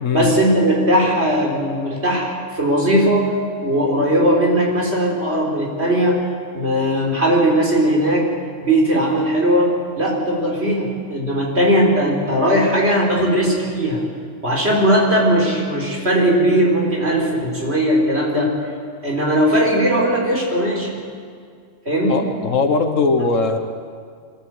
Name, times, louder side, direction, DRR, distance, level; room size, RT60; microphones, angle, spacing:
voice 1, 0.1-3.3 3.6-6.2 6.5-8.3 8.6-14.1 14.4-18.6 19.0-21.0 21.8-22.2, equal, 55° right, -2 dB, 4.5 m, -18 dB
voice 2, 22.1-23.6, left 4 dB, 80° left, 5 dB, 1.6 m, -19 dB
24.5 x 14.0 x 7.9 m, 2.1 s
omnidirectional pair, 1.3 m